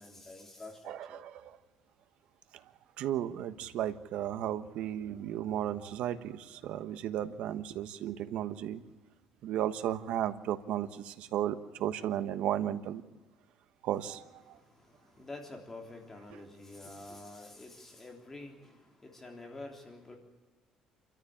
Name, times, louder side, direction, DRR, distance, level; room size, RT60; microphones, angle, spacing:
voice 1, 0.0-1.2 14.4-20.2, left 2 dB, 15° left, 3.4 m, -48 dB
voice 2, 0.8-1.6 2.5-8.8 9.4-13.0 13.8-14.6, right 11 dB, 70° right, 1.3 m, -35 dB
28.0 x 14.0 x 8.6 m
cardioid pair, 145°, 2 cm